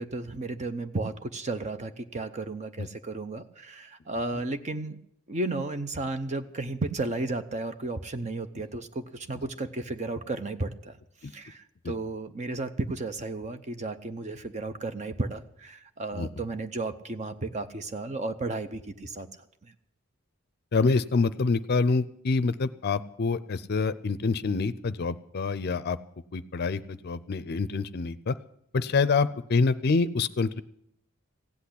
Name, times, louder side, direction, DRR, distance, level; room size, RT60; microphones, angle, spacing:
voice 1, 0.0-5.0 5.3-11.0 11.2-19.3 19.6-19.7, right 2 dB, 35° right, 9 dB, 0.7 m, -33 dB
voice 2, 20.7-26.0 26.3-28.3 28.7-30.6, left 4 dB, 50° left, 16 dB, 0.5 m, -26 dB
16.0 x 8.4 x 10.0 m, 0.72 s
head